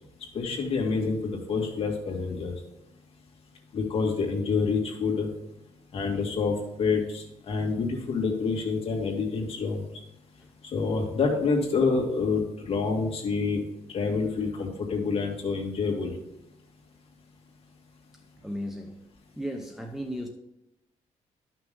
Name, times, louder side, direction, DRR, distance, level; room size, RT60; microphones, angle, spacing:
voice 1, 0.3-2.5 3.7-5.3 5.9-9.9 10.7-13.6 13.9-16.1, left 4 dB, 50° left, 0 dB, 2.2 m, -27 dB
voice 2, 18.4-19.0 19.4-20.3, equal, 5° right, 1 dB, 0.7 m, -35 dB
12.0 x 6.0 x 3.7 m, 0.89 s
cardioid pair, 160°, 13 cm